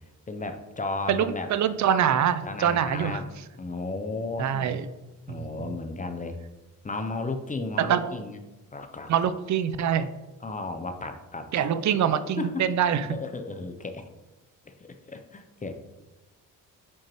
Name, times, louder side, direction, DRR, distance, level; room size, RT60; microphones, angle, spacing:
voice 1, 0.3-1.5 2.4-3.3 3.6-4.8 5.3-6.4 6.8-8.4 8.7-9.1 10.4-11.6 12.4-12.6 12.9-14.1 14.7-15.7, left 3 dB, 20° left, 7 dB, 0.6 m, -34 dB
voice 2, 1.1-3.2 4.4-4.9 5.3-5.5 7.8-8.1 9.1-10.1 11.5-13.2, right 9 dB, 50° right, 13 dB, 0.5 m, -24 dB
7.5 x 4.5 x 3.0 m, 1.1 s
cardioid pair, 85°, 38 cm